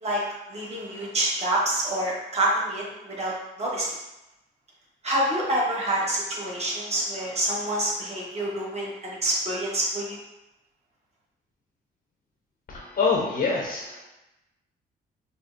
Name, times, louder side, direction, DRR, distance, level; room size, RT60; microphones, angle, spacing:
voice 1, 0.5-4.0 5.0-10.2, right 1 dB, 35° right, -4 dB, 1.1 m, -27 dB
voice 2, 12.7-14.0, left 4 dB, 50° left, -4 dB, 0.7 m, -25 dB
4.9 x 2.0 x 2.5 m, 0.94 s
cardioid pair, 90°, 20 cm